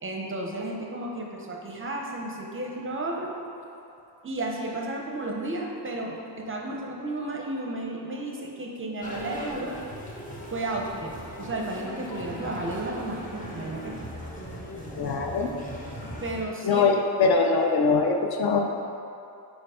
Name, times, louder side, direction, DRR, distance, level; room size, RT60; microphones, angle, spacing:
voice 1, 0.0-3.3 4.2-9.8 10.5-13.9 16.0-16.8, right 2 dB, 30° right, 0 dB, 0.5 m, -33 dB
sound 1, 9.0-16.4, equal, 20° left, 0.7 m, -39 dB
voice 2, 15.0-15.5 16.6-18.6, left 4 dB, 60° left, 3 dB, 0.5 m, -22 dB
4.7 x 4.5 x 4.8 m, 2.7 s
wide cardioid pair, 165°, 44 cm